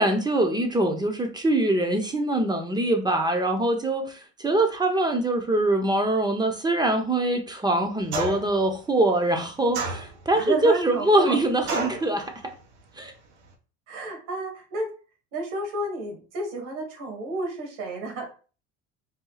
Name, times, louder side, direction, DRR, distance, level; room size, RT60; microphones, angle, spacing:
voice 1, 0.0-12.5 13.0-13.1, right 1 dB, 10° right, 0.7 m, -23 dB
sound 1, 8.1-8.6 9.7-10.4 11.7-12.1, right 2 dB, 85° right, 1.3 m, -29 dB
voice 2, 10.3-11.4 13.9-14.9 15.3-18.3, right 2 dB, 65° right, 2.0 m, -31 dB
4.2 x 2.3 x 3.9 m
supercardioid pair, 105°, 34 cm